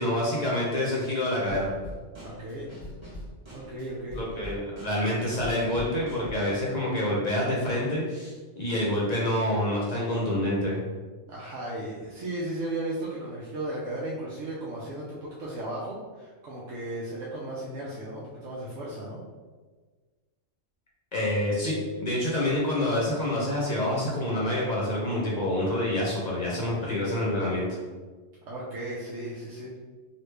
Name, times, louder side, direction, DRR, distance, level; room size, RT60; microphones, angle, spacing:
voice 1, 0.0-1.7 4.1-10.8 21.1-27.8, left 1 dB, 45° left, -5 dB, 0.6 m, -27 dB
Drum kit / Snare drum, 1.5-6.7, equal, 25° right, 1.0 m, -43 dB
voice 2, 2.2-2.7 3.5-4.2 11.3-19.2 28.5-29.8, right 1 dB, 85° right, -6 dB, 1.0 m, -35 dB
3.0 x 2.4 x 3.2 m, 1.4 s
omnidirectional pair, 1.3 m